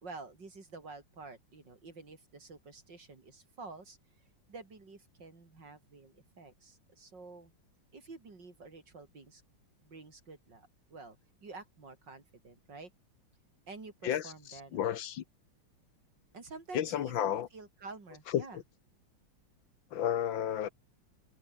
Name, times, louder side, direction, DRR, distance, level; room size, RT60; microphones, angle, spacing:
voice 1, 0.0-7.5 7.9-9.4 9.8-12.9 13.7-14.9 16.3-18.6, right 3 dB, 60° right, 4.8 m, -49 dB
voice 2, 14.0-15.2 16.7-17.5 18.3-18.5 19.9-20.7, left 10 dB, 75° left, 1.8 m, -32 dB
open air
omnidirectional pair, 2.2 m